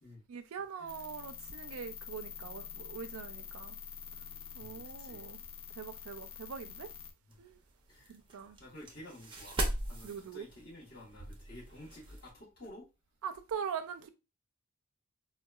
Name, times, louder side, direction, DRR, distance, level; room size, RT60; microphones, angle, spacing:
voice 1, 0.3-3.8 4.5-5.4 5.8-6.9 7.4-7.6 8.1-8.6 10.0-10.4 13.2-14.1, right 7 dB, 75° right, 0.4 m, -42 dB
sound 1, 0.9-7.1, left 7 dB, 70° left, 0.4 m, -46 dB
voice 2, 4.5-5.3 7.2-7.4 7.9-9.6 9.9-12.9, left 1 dB, 45° left, 1.1 m, -52 dB
sound 2, 7.3-12.3, right 1 dB, 25° right, 0.5 m, -40 dB
3.8 x 2.2 x 2.2 m
head